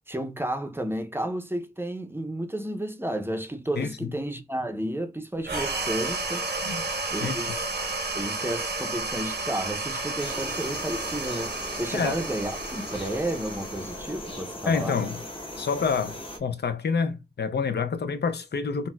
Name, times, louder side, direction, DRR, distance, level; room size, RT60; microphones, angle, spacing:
voice 1, 0.1-6.4 7.1-7.5 8.1-15.0, right 1 dB, 15° right, 0.5 m, -32 dB
voice 2, 3.8-4.1 6.6-6.8 7.2-7.4 11.9-12.2 14.6-15.2 15.6-18.9, left 5 dB, 80° left, 0.4 m, -28 dB
sound 1, 5.4-14.3, right 3 dB, 85° right, 0.8 m, -32 dB
sound 2, 10.2-16.4, left 1 dB, 30° left, 0.8 m, -39 dB
4.1 x 2.0 x 2.2 m
wide cardioid pair, 70°, 17 cm